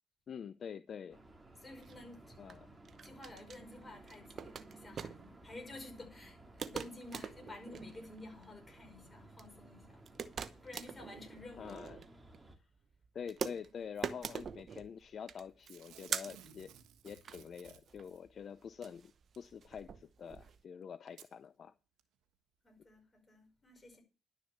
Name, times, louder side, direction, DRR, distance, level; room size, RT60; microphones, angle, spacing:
voice 1, 0.3-1.2 2.4-2.7 11.6-12.0 13.1-16.7 17.0-21.7, left 7 dB, 55° left, 0.6 m, -46 dB
sound 1, 1.1-12.6, right 2 dB, 15° right, 2.5 m, -57 dB
voice 2, 1.6-2.4 3.0-10.0 10.4-11.8 22.6-24.0, left 2 dB, 25° left, 5.4 m, -52 dB
sound 2, 1.8-20.6, right 6 dB, 50° right, 0.9 m, -45 dB
Packing tape duct tape / Tearing, 13.9-14.4 15.6-18.2 19.3-19.4 20.3-20.4 21.1-21.3 22.0-22.1, right 9 dB, 90° right, 1.4 m, -58 dB
11.5 x 6.5 x 7.2 m
cardioid pair, 90°, 0 cm